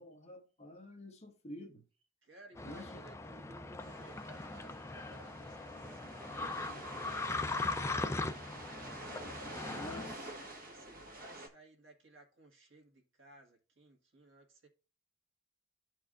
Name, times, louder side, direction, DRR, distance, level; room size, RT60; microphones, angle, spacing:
voice 1, 0.0-1.8 2.6-3.0 9.7-10.3, left 1 dB, 35° left, 1.3 m, -49 dB
voice 2, 2.2-7.2 7.5-8.5 10.4-14.7, right 2 dB, 70° right, 1.7 m, -59 dB
sound 1, 2.6-10.1, left 3 dB, 15° left, 0.4 m, -40 dB
sound 2, 3.8-11.5, right 1 dB, 45° right, 1.4 m, -49 dB
13.0 x 4.6 x 2.4 m
head